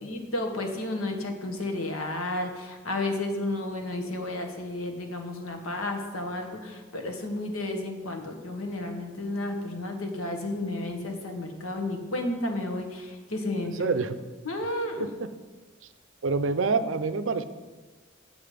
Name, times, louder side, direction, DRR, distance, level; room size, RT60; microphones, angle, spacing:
voice 1, 0.0-13.9 14.4-15.1, left 2 dB, 90° left, 4 dB, 1.4 m, -32 dB
voice 2, 13.8-14.2 15.2-15.3 16.2-17.4, right 4 dB, 65° right, 11 dB, 0.5 m, -26 dB
7.8 x 7.2 x 5.0 m, 1.3 s
head